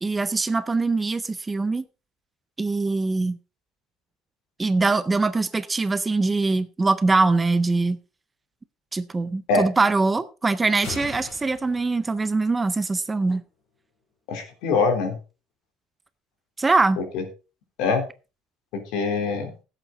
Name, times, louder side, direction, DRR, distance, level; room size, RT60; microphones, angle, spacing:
voice 1, 0.0-1.8 2.6-3.4 4.6-8.0 8.9-13.4 16.6-17.0, right 3 dB, 10° right, 0.4 m, -23 dB
sound 1, 10.8-12.7, left 4 dB, 40° left, 4.7 m, -40 dB
voice 2, 14.3-15.2 17.0-17.2 17.8-18.0 18.7-19.5, left 4 dB, 65° left, 3.3 m, -24 dB
16.0 x 8.1 x 3.8 m
cardioid pair, 180°, 0 cm